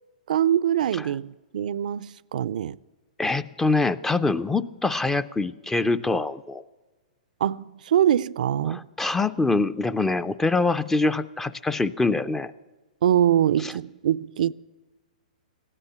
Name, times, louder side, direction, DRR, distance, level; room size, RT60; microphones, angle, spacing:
voice 1, 0.3-2.8 7.4-8.9 13.0-14.5, right 10 dB, 70° right, 0.3 m, -23 dB
voice 2, 3.2-6.6 8.7-12.5 13.6-13.7, left 3 dB, 10° left, 0.4 m, -24 dB
15.0 x 9.9 x 7.8 m
hypercardioid pair, 135°, 4 cm